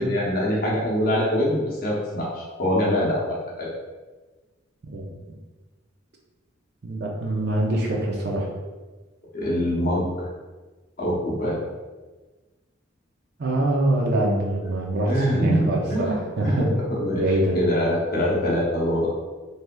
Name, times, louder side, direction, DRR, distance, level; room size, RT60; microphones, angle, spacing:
voice 1, 0.0-3.7 9.3-10.3 11.0-11.6 15.1-17.2 17.5-19.1, equal, 45° left, -5 dB, 0.8 m, -24 dB
voice 2, 6.8-8.5 13.4-16.7 17.2-17.6, right 1 dB, 50° right, -1 dB, 0.5 m, -24 dB
3.3 x 2.7 x 2.2 m, 1.3 s
head